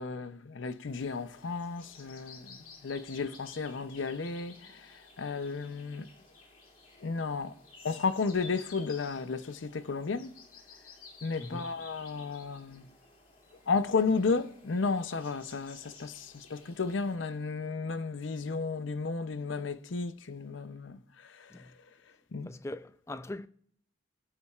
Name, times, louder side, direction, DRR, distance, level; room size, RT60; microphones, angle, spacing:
voice 1, 0.0-2.5 2.8-6.1 7.0-7.5 7.8-10.3 11.2-12.9 13.7-21.7 22.3-22.5, left 4 dB, 80° left, 0.6 m, -33 dB
sound 1, 0.9-17.1, left 4 dB, 45° left, 2.6 m, -54 dB
voice 2, 11.4-11.7 21.5-21.7 22.4-23.5, left 1 dB, 15° left, 0.3 m, -41 dB
20.5 x 8.5 x 2.4 m
head